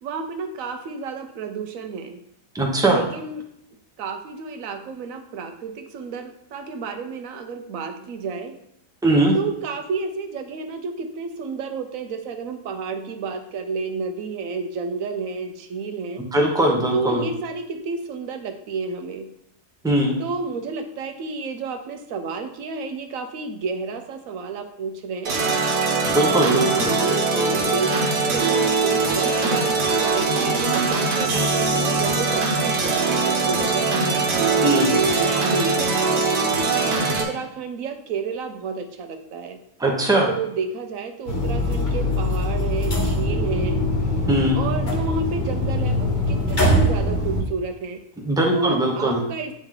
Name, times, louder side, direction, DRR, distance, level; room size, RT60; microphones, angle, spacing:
voice 1, 0.0-2.2 2.9-3.5 4.0-8.6 9.3-16.2 16.9-19.3 20.2-25.4 26.5-28.0 28.3-34.2 34.9-39.6 40.3-43.8 44.5-48.0 48.5-49.5, right 4 dB, 65° right, 7 dB, 1.0 m, -30 dB
voice 2, 2.5-3.0 9.0-9.3 16.3-17.2 19.8-20.1 26.1-26.9 34.6-34.9 39.8-40.3 44.3-44.6 48.2-49.2, right 1 dB, 5° right, 0 dB, 0.5 m, -20 dB
sound 1, 25.3-37.2, right 4 dB, 90° right, 1.6 m, -21 dB
sound 2, 41.3-47.4, left 1 dB, 35° left, 1.0 m, -22 dB
8.8 x 3.0 x 3.7 m, 0.76 s
omnidirectional pair, 1.7 m